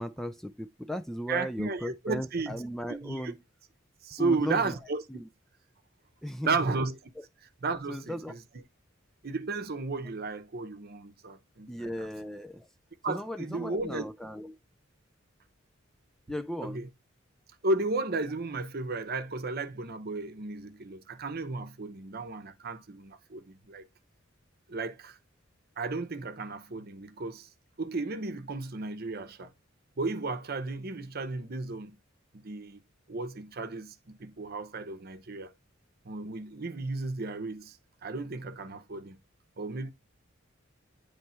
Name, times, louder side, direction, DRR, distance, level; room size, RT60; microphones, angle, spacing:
voice 1, 0.0-3.4 4.2-4.8 5.1-5.2 6.2-6.6 7.9-8.4 11.7-12.7 13.1-14.5 16.3-16.8, equal, ahead, 0.3 m, -36 dB
voice 2, 1.3-2.6 2.9-3.3 4.0-5.0 6.4-7.0 7.6-8.4 9.2-12.1 13.0-14.0 16.6-16.9 17.6-23.9 24.7-25.2 25.8-27.5 27.8-29.5 30.0-32.0 32.3-32.8 33.1-35.5 36.0-37.8 38.0-39.2 39.6-39.9, right 3 dB, 50° right, 0.8 m, -34 dB
9.5 x 3.2 x 4.3 m
head